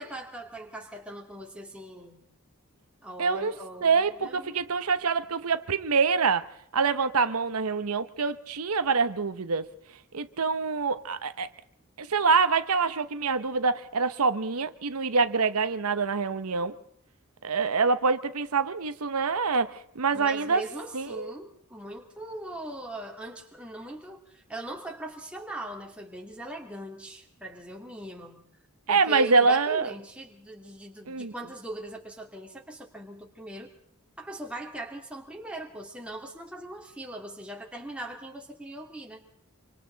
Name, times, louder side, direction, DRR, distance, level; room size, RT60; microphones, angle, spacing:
voice 1, 0.0-2.2 3.0-4.6 20.1-28.5 28.9-33.7 34.2-39.2, right 1 dB, 5° right, 2.7 m, -40 dB
voice 2, 3.2-3.5 3.8-6.5 6.7-9.7 10.1-11.5 12.0-16.8 17.4-20.6 20.9-21.3 28.9-29.9 31.1-31.3, right 4 dB, 85° right, 0.9 m, -25 dB
26.0 x 25.0 x 4.0 m
head